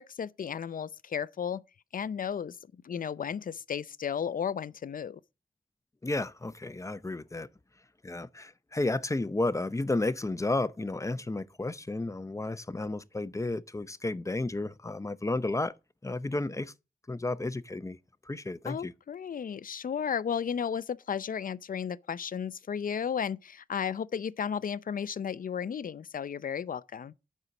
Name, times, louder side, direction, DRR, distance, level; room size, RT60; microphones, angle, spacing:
voice 1, 0.0-1.6 1.9-2.6 2.8-5.2 18.7-27.1, left 7 dB, 70° left, 0.5 m, -34 dB
voice 2, 6.0-7.5 8.0-15.7 16.0-16.7 17.1-18.0 18.3-18.9, left 2 dB, 20° left, 0.7 m, -32 dB
8.0 x 5.6 x 5.9 m
cardioid pair, 55°, 15 cm